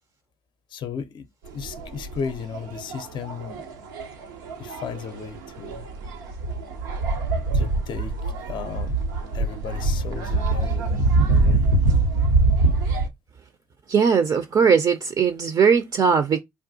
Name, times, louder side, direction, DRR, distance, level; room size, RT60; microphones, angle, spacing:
voice 1, 0.7-1.3 1.5-3.6 4.6-5.9 7.5-9.0 9.3-11.7, left 6 dB, 50° left, 0.5 m, -35 dB
sound 1, 1.5-13.1, right 2 dB, 90° right, 0.6 m, -24 dB
voice 2, 13.9-16.4, right 6 dB, 40° right, 0.5 m, -19 dB
3.5 x 2.3 x 2.5 m
hypercardioid pair, 60°, 10 cm